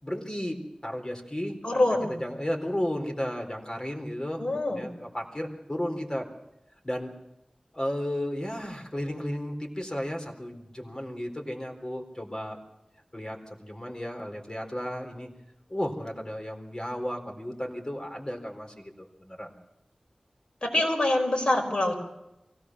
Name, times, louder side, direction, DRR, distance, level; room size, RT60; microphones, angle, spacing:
voice 1, 0.0-1.6 2.1-4.4 4.7-6.3 6.8-7.1 7.7-12.6 13.1-15.3 15.7-19.5, equal, 30° left, 3 dB, 4.1 m, -34 dB
voice 2, 1.6-2.2 4.4-4.9 20.6-22.0, left 1 dB, 50° left, 2 dB, 5.1 m, -25 dB
23.5 x 17.5 x 6.3 m, 0.90 s
wide cardioid pair, 45°, 2 cm